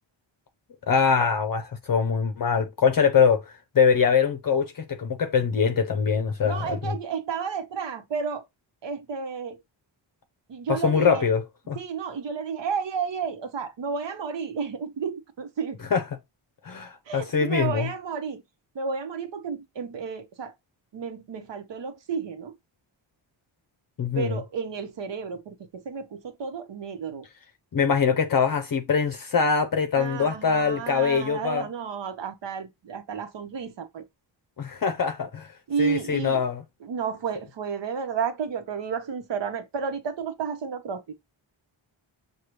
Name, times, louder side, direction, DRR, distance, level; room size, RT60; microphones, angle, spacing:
voice 1, 0.9-7.0 10.7-11.8 15.9-16.0 16.6-17.9 24.0-24.4 27.7-31.6 34.6-35.5 35.8-36.6, left 6 dB, 45° left, 0.6 m, -23 dB
voice 2, 6.4-8.5 8.8-9.6 10.5-11.3 11.7-15.8 17.1-18.4 18.7-20.5 20.9-22.5 24.1-27.3 30.0-34.0 35.7-36.4 36.8-41.1, right 6 dB, 65° right, 1.0 m, -32 dB
6.5 x 2.3 x 3.1 m
wide cardioid pair, 105°, 47 cm